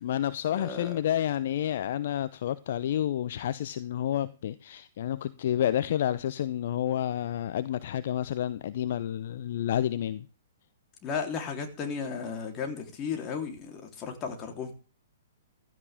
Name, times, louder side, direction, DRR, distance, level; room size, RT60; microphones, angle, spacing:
voice 1, 0.0-10.3, left 11 dB, 55° left, 0.8 m, -30 dB
voice 2, 0.6-1.0 11.0-14.7, left 6 dB, 30° left, 3.6 m, -34 dB
15.5 x 13.5 x 3.6 m
figure-of-eight pair, 115°, 0 cm